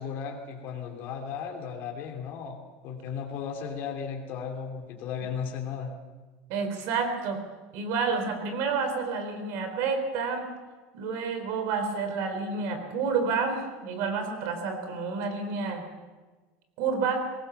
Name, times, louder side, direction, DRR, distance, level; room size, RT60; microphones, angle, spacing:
voice 1, 0.0-2.6 2.8-5.9, left 7 dB, 40° left, 1 dB, 3.0 m, -35 dB
voice 2, 6.5-7.4 7.7-10.4 10.9-15.9 16.8-17.3, right 5 dB, 55° right, 7 dB, 4.0 m, -29 dB
22.5 x 19.0 x 7.1 m, 1.3 s
cardioid pair, 170°, 5 cm